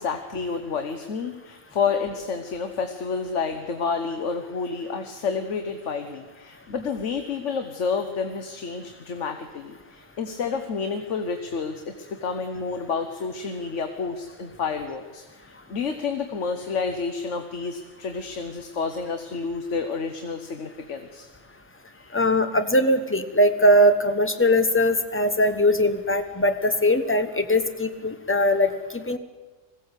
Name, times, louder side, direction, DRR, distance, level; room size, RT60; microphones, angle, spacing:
voice 1, 0.0-11.9 12.2-21.3 21.9-22.2, left 5 dB, 70° left, 7 dB, 1.4 m, -30 dB
voice 2, 22.1-29.2, left 1 dB, 10° left, 8 dB, 1.0 m, -21 dB
21.0 x 15.5 x 8.1 m, 1.3 s
omnidirectional pair, 1.3 m